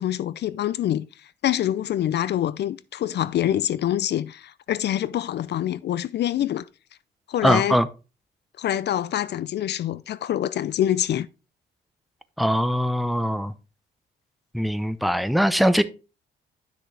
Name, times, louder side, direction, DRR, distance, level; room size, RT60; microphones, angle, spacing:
voice 1, 0.0-6.7 7.3-7.8 8.6-11.3, left 11 dB, 60° left, 0.4 m, -25 dB
voice 2, 7.4-7.9 12.4-13.5 14.5-15.8, equal, ahead, 0.8 m, -21 dB
10.5 x 6.2 x 3.3 m
cardioid pair, 90°, 20 cm